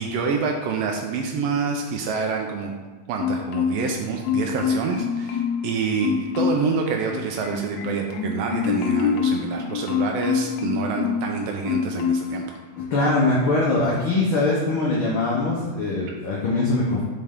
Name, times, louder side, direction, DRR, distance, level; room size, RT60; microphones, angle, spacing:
voice 1, 0.0-2.7 3.1-12.5, right 5 dB, 85° right, 1 dB, 1.4 m, -27 dB
Marimba xylophone, 3.2-4.0 4.2-5.7 6.0-6.7 7.1-11.3 11.7-12.4 12.8-13.0, left 6 dB, 85° left, 2.0 m, -25 dB
voice 2, 12.9-17.0, left 2 dB, 65° left, -5 dB, 1.3 m, -22 dB
7.5 x 4.3 x 3.6 m, 1.3 s
omnidirectional pair, 3.3 m